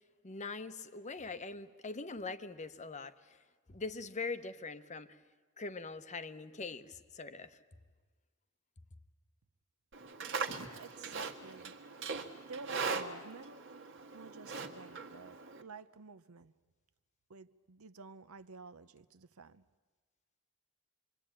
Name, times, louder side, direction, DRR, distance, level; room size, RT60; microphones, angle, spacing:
voice 1, 0.2-3.4 3.7-5.2 5.6-7.6, left 3 dB, 30° left, 0.9 m, -42 dB
Livestock farm animals working animals, 9.9-15.6, right 4 dB, 55° right, 1.6 m, -40 dB
voice 2, 10.7-11.7 12.4-13.6 14.1-16.5 17.3-19.6, right 4 dB, 70° right, 0.8 m, -51 dB
26.5 x 23.0 x 8.9 m
head